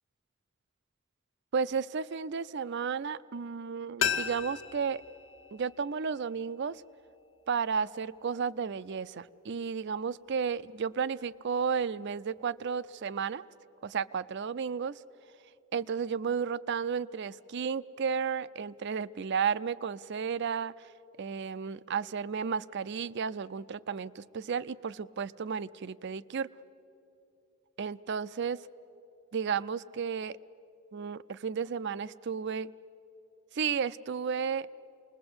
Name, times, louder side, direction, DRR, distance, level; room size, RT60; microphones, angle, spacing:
voice 1, 1.5-5.0 5.5-6.8 7.5-13.5 13.8-15.0 15.7-20.9 21.2-26.5 27.8-28.6 29.3-30.4 30.9-32.7 33.5-34.7, right 6 dB, 55° right, 17 dB, 0.5 m, -33 dB
sound 1, 4.0-6.8 7.1-7.2, left 7 dB, 65° left, 1.3 m, -35 dB
28.0 x 20.5 x 7.9 m, 2.8 s
head